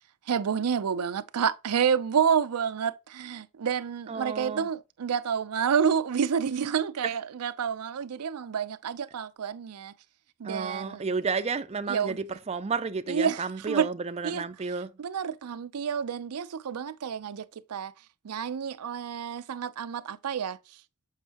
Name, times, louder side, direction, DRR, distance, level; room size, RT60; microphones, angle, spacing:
voice 1, 0.3-9.9 10.4-11.1 11.9-12.2 13.1-13.9 14.2-14.4 15.0-17.9 18.2-20.6, right 7 dB, 85° right, 0.5 m, -29 dB
voice 2, 4.1-4.7 7.0-7.1 10.4-14.9, right 5 dB, 30° right, 0.4 m, -31 dB
7.4 x 5.4 x 2.9 m
head